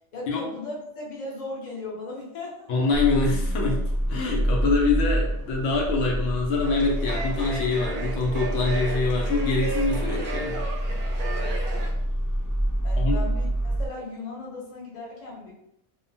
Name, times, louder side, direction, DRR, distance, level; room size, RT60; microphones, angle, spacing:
voice 1, 0.1-2.7 11.2-11.6 12.8-15.5, left 2 dB, 40° left, -4 dB, 0.8 m, -37 dB
voice 2, 2.7-3.8 4.1-10.6 13.0-13.2, left 3 dB, 80° left, -1 dB, 1.0 m, -25 dB
sound 1, 2.9-13.9, equal, 10° left, 0.3 m, -27 dB
sound 2, 6.6-11.9, right 3 dB, 55° right, 0.6 m, -35 dB
2.8 x 2.1 x 2.6 m, 0.80 s
omnidirectional pair, 1.2 m